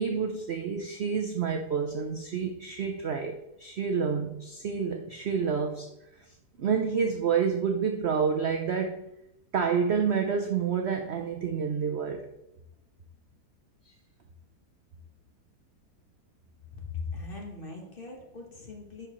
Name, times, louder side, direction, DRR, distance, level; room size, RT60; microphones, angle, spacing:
voice 1, 0.0-5.9 6.2-6.3 6.6-9.1 9.5-12.3, right 6 dB, 65° right, 4 dB, 0.6 m, -28 dB
voice 2, 16.7-19.1, left 4 dB, 35° left, 1 dB, 1.2 m, -39 dB
10.5 x 4.9 x 3.0 m, 0.87 s
omnidirectional pair, 1.9 m